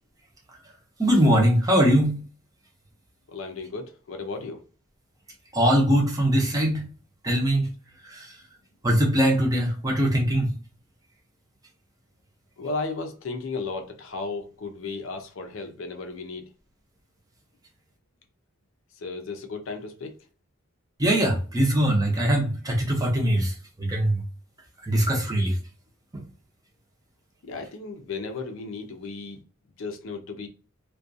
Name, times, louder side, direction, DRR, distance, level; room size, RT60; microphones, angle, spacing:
voice 1, 1.0-2.2 5.5-6.8 7.2-7.7 8.0-8.3 8.8-10.5 21.0-24.2 24.8-25.6 26.1-26.2, right 1 dB, 15° right, 0.6 m, -22 dB
voice 2, 3.3-4.6 12.6-16.5 19.0-20.2 27.4-29.4 29.8-30.5, left 3 dB, 65° left, 0.5 m, -34 dB
2.4 x 2.2 x 2.5 m
head